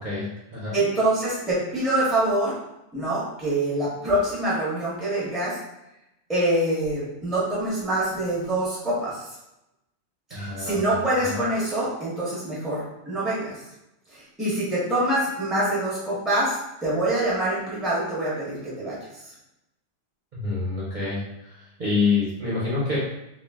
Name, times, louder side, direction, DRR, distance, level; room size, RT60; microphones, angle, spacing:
voice 1, 0.0-0.8 10.3-11.4 20.3-23.0, left 4 dB, 50° right, -8 dB, 0.7 m, -27 dB
voice 2, 0.7-2.6 2.9-5.6 6.3-9.2 10.3-13.6 14.1-19.0, right 1 dB, ahead, -7 dB, 0.7 m, -25 dB
2.3 x 2.0 x 3.3 m, 0.89 s
omnidirectional pair, 1.2 m